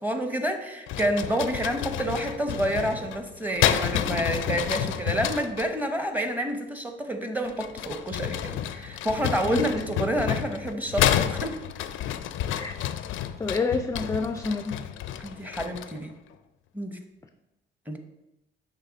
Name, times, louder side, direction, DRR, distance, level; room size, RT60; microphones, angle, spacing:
voice 1, 0.0-11.6 15.2-16.1 16.7-17.0 17.9-18.0, right 1 dB, 10° right, 5 dB, 0.8 m, -29 dB
sound 1, 0.9-5.7 7.4-16.0, left 10 dB, 85° left, 0.4 m, -30 dB
voice 2, 13.4-14.7, left 4 dB, 15° left, 7 dB, 0.3 m, -28 dB
6.6 x 3.2 x 5.1 m, 0.95 s
cardioid pair, 90°, 20 cm